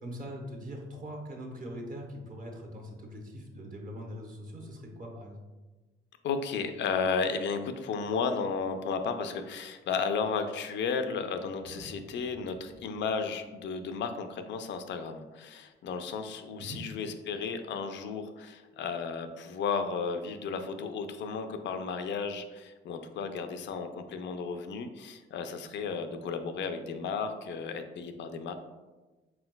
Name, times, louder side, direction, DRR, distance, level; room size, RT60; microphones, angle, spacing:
voice 1, 0.0-5.4 16.6-16.8 26.0-26.1, equal, 45° right, 0 dB, 0.9 m, -42 dB
voice 2, 6.2-28.5, left 5 dB, 65° left, 7 dB, 0.4 m, -33 dB
Thunder, 8.7-16.0 17.6-17.7, right 1 dB, 90° right, 1.4 m, -57 dB
4.5 x 3.7 x 2.2 m, 1.2 s
cardioid pair, 90°, 20 cm